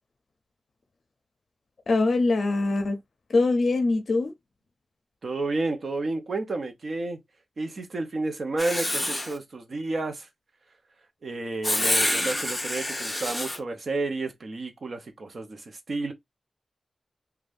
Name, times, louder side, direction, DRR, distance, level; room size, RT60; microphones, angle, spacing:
voice 1, 1.9-3.0 3.3-4.3, left 3 dB, 60° left, 0.5 m, -23 dB
voice 2, 5.2-7.2 7.6-10.3 11.2-16.1, right 2 dB, 50° right, 0.7 m, -31 dB
Writing, 8.6-9.4 11.6-13.6, left 1 dB, 5° left, 0.7 m, -27 dB
2.6 x 2.3 x 3.4 m
wide cardioid pair, 160°, 0 cm